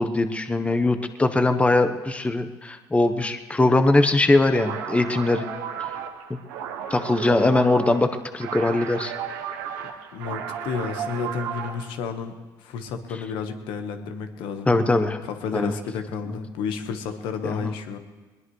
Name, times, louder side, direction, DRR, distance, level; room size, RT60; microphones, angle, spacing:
voice 1, 0.0-5.4 5.8-5.9 6.3-6.4 6.9-9.1 14.7-15.2 15.5-15.7 16.3-16.4 17.4-17.7, left 2 dB, 15° left, 8 dB, 1.0 m, -21 dB
sound 1, 4.5-11.9, right 8 dB, 90° right, 1.1 m, -34 dB
voice 2, 10.1-12.3 12.6-14.7 15.3-18.0, left 5 dB, 75° left, 7 dB, 1.4 m, -31 dB
20.5 x 19.5 x 3.2 m, 1.3 s
supercardioid pair, 75°, 8 cm